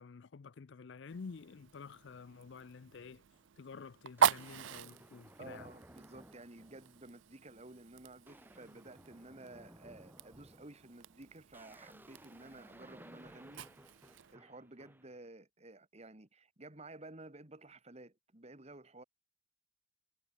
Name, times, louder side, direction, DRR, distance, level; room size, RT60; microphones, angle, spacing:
voice 1, 0.0-3.2 3.6-5.7, left 5 dB, 60° left, 0.5 m, -50 dB
Fire, 1.1-14.4, right 7 dB, 75° right, 0.5 m, -41 dB
sound 1, 3.3-3.5 4.2-7.1 7.5-7.8 8.1-15.2, right 1 dB, 10° right, 6.7 m, -58 dB
voice 2, 5.4-13.6 14.3-19.0, right 2 dB, 35° right, 2.0 m, -53 dB
head